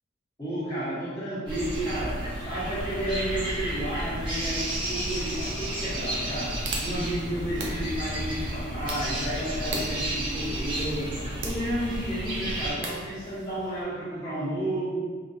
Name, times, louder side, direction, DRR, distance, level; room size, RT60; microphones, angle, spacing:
voice 1, 0.4-11.2 11.4-15.0, right 1 dB, 20° left, -10 dB, 1.2 m, -32 dB
sound 1, 1.5-12.7, right 1 dB, 25° right, 0.9 m, -32 dB
sound 2, 6.1-13.8, right 2 dB, 60° right, 0.5 m, -39 dB
3.7 x 2.7 x 2.5 m, 1.5 s
head